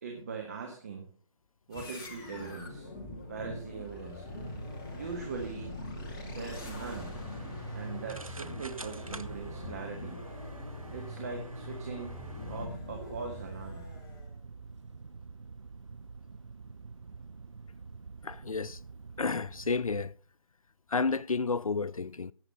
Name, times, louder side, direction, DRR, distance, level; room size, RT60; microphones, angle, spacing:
voice 1, 0.0-1.1 1.7-2.9 3.3-4.5 4.9-5.7 6.2-7.2 7.7-10.3 10.9-12.1 12.5-13.9, right 5 dB, 30° right, 1.5 m, -41 dB
sound 1, 1.7-14.4, left 2 dB, 5° left, 0.5 m, -43 dB
sound 2, 4.3-20.1, right 4 dB, 60° right, 0.7 m, -48 dB
sound 3, 6.3-12.7, right 2 dB, 90° right, 0.9 m, -50 dB
voice 2, 18.2-18.8 19.2-20.1 20.9-22.3, left 4 dB, 85° left, 0.5 m, -31 dB
17.0 x 7.6 x 4.1 m
figure-of-eight pair, 155°, 17 cm